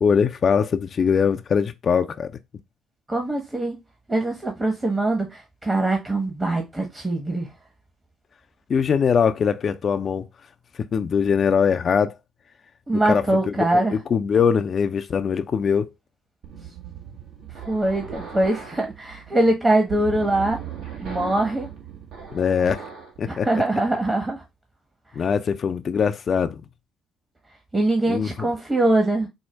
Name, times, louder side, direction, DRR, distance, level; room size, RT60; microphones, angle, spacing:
voice 1, 0.0-2.3 8.7-10.3 10.9-12.2 13.0-13.2 13.7-15.9 22.3-22.8 23.2-23.5 25.2-26.6 28.1-28.5, left 6 dB, 45° left, 0.4 m, -21 dB
voice 2, 3.1-3.8 4.1-7.5 12.9-14.0 17.7-20.6 21.0-21.7 23.3-24.4 27.7-29.3, right 2 dB, 20° right, 1.0 m, -23 dB
sound 1, 16.4-23.2, right 7 dB, 65° right, 1.1 m, -38 dB
4.5 x 2.1 x 3.3 m
hypercardioid pair, 55°, 0 cm